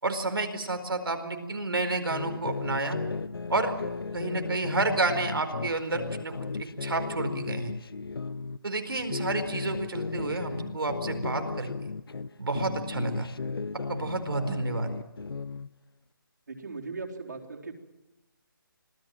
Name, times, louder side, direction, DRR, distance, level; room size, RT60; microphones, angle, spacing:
voice 1, 0.0-3.0 3.5-3.7 4.1-6.3 6.6-7.7 8.6-11.9 12.4-13.3 13.9-14.9, right 3 dB, 90° right, 7 dB, 4.5 m, -30 dB
sound 1, 2.1-8.6 9.0-12.3 12.5-15.7, left 4 dB, 90° left, 1.0 m, -35 dB
voice 2, 16.5-17.7, right 4 dB, 55° right, 0 dB, 4.2 m, -38 dB
26.0 x 18.5 x 7.7 m, 0.98 s
hypercardioid pair, 180°, 12 cm